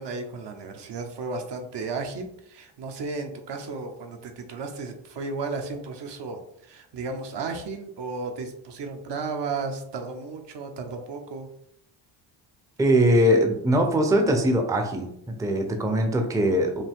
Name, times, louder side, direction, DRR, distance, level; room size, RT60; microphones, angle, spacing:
voice 1, 0.0-11.5, right 4 dB, 60° right, 4 dB, 1.0 m, -34 dB
voice 2, 12.8-16.8, equal, 5° right, 4 dB, 0.6 m, -21 dB
5.4 x 2.7 x 3.6 m, 0.73 s
cardioid pair, 105°, 48 cm